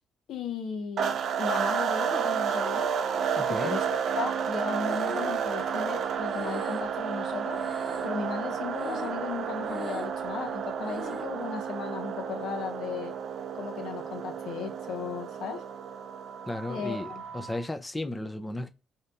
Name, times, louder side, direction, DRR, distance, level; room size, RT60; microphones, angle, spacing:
voice 1, 0.3-2.9 3.4-7.6 8.0-13.1 13.5-15.6 16.7-17.2, left 6 dB, 75° left, 0.8 m, -36 dB
sound 1, 1.0-17.7, right 7 dB, 65° right, 0.4 m, -31 dB
voice 2, 3.3-3.8 16.5-18.7, left 1 dB, 15° left, 0.5 m, -34 dB
Breathing, 3.5-4.2 4.8-7.3 7.5-8.3 8.7-9.3 9.6-10.3 10.9-11.3, left 4 dB, 30° left, 1.1 m, -44 dB
2.8 x 2.7 x 3.3 m
cardioid pair, 90°, 0 cm